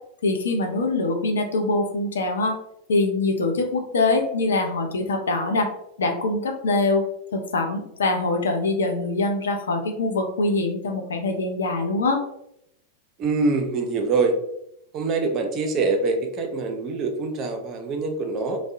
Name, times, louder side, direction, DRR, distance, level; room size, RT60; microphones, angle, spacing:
voice 1, 0.2-2.6 2.9-5.7 6.0-7.0 7.3-12.2, left 2 dB, 65° left, 4 dB, 0.4 m, -23 dB
voice 2, 13.2-14.4 14.9-18.6, right 3 dB, 35° right, 4 dB, 0.4 m, -24 dB
2.6 x 2.0 x 2.4 m, 0.77 s
figure-of-eight pair, 90°, 0 cm